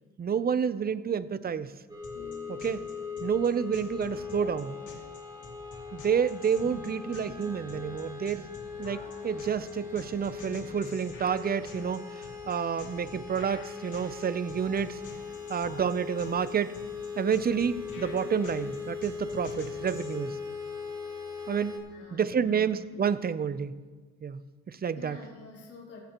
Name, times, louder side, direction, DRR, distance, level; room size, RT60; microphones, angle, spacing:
voice 1, 0.2-1.7 2.5-2.9 3.2-4.8 5.9-8.5 8.8-15.0 15.5-16.8 17.2-20.4 21.5-21.8 22.1-23.8 24.2-24.4 24.7-25.2, right 7 dB, 30° right, 15 dB, 0.6 m, -29 dB
sound 1, 1.9-21.8, left 6 dB, 15° right, 3.9 m, -40 dB
sound 2, 2.0-20.2, left 3 dB, 75° left, 2.5 m, -47 dB
voice 2, 21.9-22.7 24.9-26.0, left 2 dB, 50° left, -5 dB, 3.9 m, -47 dB
16.5 x 15.5 x 3.0 m, 1.4 s
cardioid pair, 90°, 30 cm